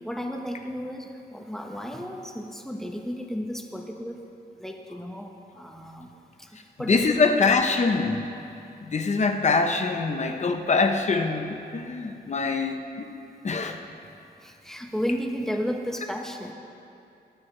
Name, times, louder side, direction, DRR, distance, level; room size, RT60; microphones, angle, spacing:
voice 1, 0.0-4.2 4.6-6.1 6.4-7.2 13.6-13.8 14.4-16.5, equal, ahead, 2 dB, 0.9 m, -33 dB
voice 2, 6.8-8.3 8.8-12.8 13.4-13.8, left 4 dB, 40° left, 5 dB, 0.9 m, -24 dB
19.0 x 11.5 x 3.3 m, 2.7 s
wide cardioid pair, 155°, 17 cm